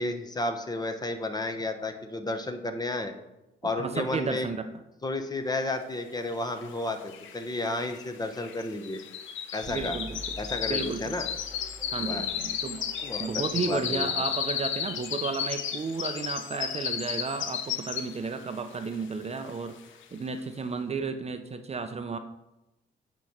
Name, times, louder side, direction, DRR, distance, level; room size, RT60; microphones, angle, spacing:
voice 1, 0.0-3.1 3.6-4.5 5.0-9.0 9.5-10.0 10.4-11.3 12.0-12.2 13.0-14.1, left 2 dB, 20° left, 6 dB, 0.8 m, -32 dB
voice 2, 3.8-4.7 9.7-10.2 10.7-11.1 11.9-12.8 13.2-19.8 20.1-22.2, right 4 dB, 30° right, 8 dB, 0.6 m, -33 dB
sound 1, 6.6-6.7 6.9-18.3 18.7-19.1 19.5-19.6, left 8 dB, 75° left, 0.7 m, -33 dB
sound 2, 9.6-15.1, equal, ahead, 1.7 m, -47 dB
8.8 x 3.1 x 6.5 m, 0.95 s
cardioid pair, 90°, 20 cm